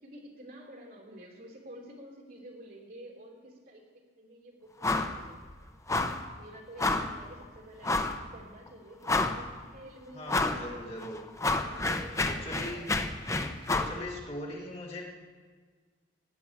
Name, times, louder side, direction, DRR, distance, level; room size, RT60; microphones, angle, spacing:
voice 1, 0.0-5.7 6.3-10.8 11.5-13.9, right 1 dB, 50° right, -1 dB, 3.1 m, -50 dB
sound 1, 4.8-5.2 5.4-5.6 5.9-6.2 6.8-7.2 7.8-8.2 8.7-8.8 9.0-9.6 10.3-10.6 11.0-14.0, left 2 dB, 15° left, 0.7 m, -29 dB
voice 2, 10.1-11.5 12.2-12.9 13.7-15.0, left 1 dB, 35° left, -4 dB, 3.4 m, -40 dB
17.0 x 6.3 x 9.9 m, 1.5 s
head